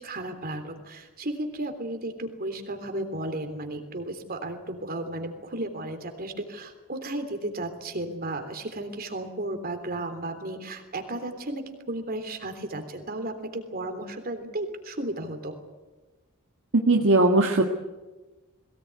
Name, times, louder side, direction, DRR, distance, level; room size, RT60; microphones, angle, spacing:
voice 1, 0.0-15.5, right 1 dB, 45° right, 6 dB, 3.4 m, -34 dB
voice 2, 16.7-17.6, right 2 dB, 60° right, 2 dB, 1.7 m, -19 dB
22.0 x 18.5 x 9.5 m, 1.2 s
head